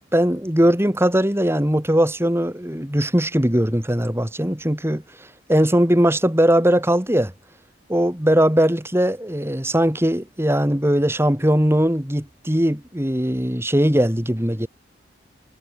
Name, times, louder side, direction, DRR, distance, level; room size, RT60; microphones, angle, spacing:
voice 1, 0.1-5.0 5.5-7.3 7.9-14.7, equal, 15° right, 2.9 m, -19 dB
head